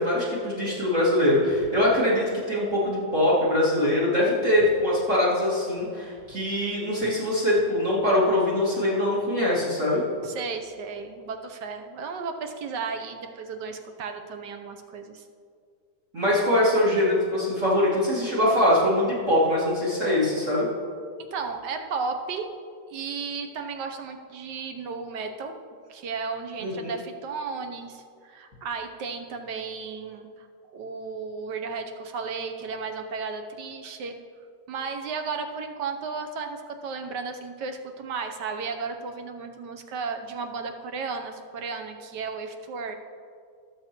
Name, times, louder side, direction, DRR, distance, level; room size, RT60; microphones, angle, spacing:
voice 1, 0.0-10.0 16.1-20.7 26.6-26.9, left 1 dB, 40° right, -8 dB, 2.7 m, -23 dB
voice 2, 10.2-15.2 21.3-22.5 22.9-25.5 25.9-30.5 30.7-34.2 34.7-43.0, right 5 dB, 65° right, 6 dB, 1.3 m, -34 dB
19.5 x 7.3 x 3.0 m, 2.1 s
omnidirectional pair, 2.2 m